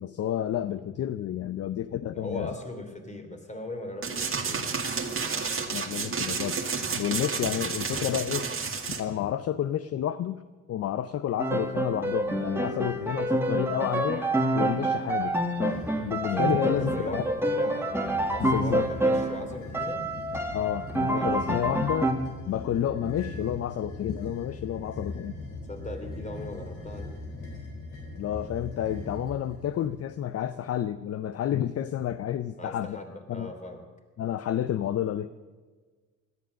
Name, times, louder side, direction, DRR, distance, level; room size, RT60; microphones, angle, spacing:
voice 1, 0.0-2.5 5.7-6.6 6.9-8.5 8.9-14.3 14.5-17.2 18.4-18.9 20.5-22.1 22.5-25.3 28.2-33.0 33.3-33.5 34.2-35.3, left 10 dB, 55° left, 13 dB, 0.6 m, -30 dB
voice 2, 2.1-4.6 16.3-20.0 21.2-21.8 25.7-27.1 32.6-33.8, left 2 dB, 25° left, 4 dB, 3.0 m, -38 dB
sound 1, 4.0-9.0, right 5 dB, 45° right, 1.9 m, -31 dB
Piano, 11.4-19.4 19.7-22.1, right 1 dB, 10° right, 1.9 m, -27 dB
sound 2, 15.5-16.1 16.7-17.3 17.9-29.9, left 2 dB, 85° left, 4.7 m, -40 dB
17.0 x 12.5 x 6.5 m, 1.4 s
cardioid pair, 90°, 30 cm